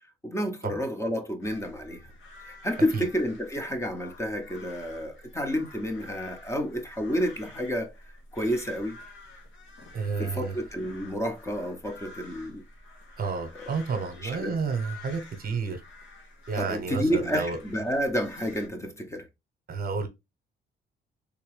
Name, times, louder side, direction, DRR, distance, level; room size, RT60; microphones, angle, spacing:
voice 1, 0.2-2.0 2.4-7.9 8.3-9.0 10.2-12.6 13.5-13.7 14.2-14.5 16.6-19.2, equal, 15° left, 0.7 m, -30 dB
sound 1, 1.4-18.7, left 2 dB, 75° left, 1.3 m, -49 dB
voice 2, 9.9-10.6 13.2-15.8 16.5-17.6 19.7-20.1, right 5 dB, 50° right, 0.9 m, -30 dB
3.5 x 2.9 x 3.2 m
cardioid pair, 90°, 20 cm